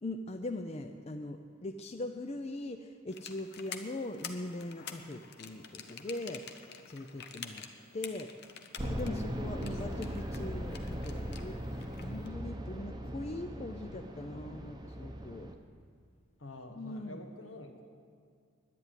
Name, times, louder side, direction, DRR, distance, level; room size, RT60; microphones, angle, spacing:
voice 1, 0.0-6.4 6.9-7.7 7.9-8.3 8.8-15.5 16.7-17.2, left 2 dB, 30° left, 6 dB, 0.5 m, -41 dB
sound 1, 3.1-12.3, left 7 dB, 55° left, 0.9 m, -48 dB
sound 2, 8.8-15.5, equal, 20° right, 0.8 m, -39 dB
voice 2, 8.9-10.1 16.4-17.8, left 1 dB, 75° left, 4 dB, 1.5 m, -47 dB
10.5 x 9.7 x 9.0 m, 2.2 s
head